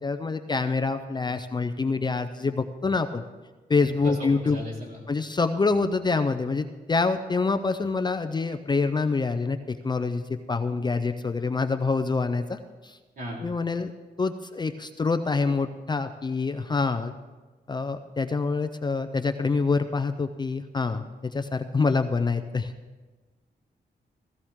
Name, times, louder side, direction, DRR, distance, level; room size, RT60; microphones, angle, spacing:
voice 1, 0.0-3.2 3.7-4.6 5.1-13.0 13.4-13.9 14.2-17.2 17.7-22.7, left 4 dB, 25° left, 8 dB, 0.5 m, -26 dB
voice 2, 4.0-5.0 13.2-13.4, equal, 55° right, -4 dB, 4.1 m, -36 dB
16.0 x 15.5 x 3.6 m, 1.3 s
wide cardioid pair, 165°, 17 cm